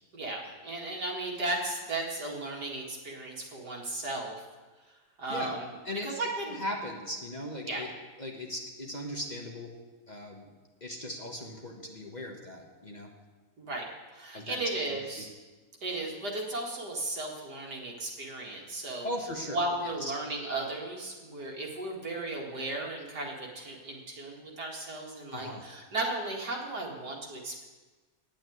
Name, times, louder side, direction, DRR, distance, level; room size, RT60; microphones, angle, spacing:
voice 1, 0.1-4.4 5.2-5.6 6.0-6.6 7.7-7.8 13.6-13.8 14.1-15.3 15.8-19.1 19.5-27.6, right 2 dB, 75° right, 0 dB, 2.6 m, -35 dB
voice 2, 5.8-7.9 8.2-9.7 10.1-10.5 10.8-13.1 14.3-14.8 15.2-15.3 19.0-19.6 20.0-20.2 25.3-25.6, left 1 dB, 30° left, 1 dB, 1.2 m, -38 dB
9.0 x 8.7 x 9.3 m, 1.3 s
omnidirectional pair, 1.7 m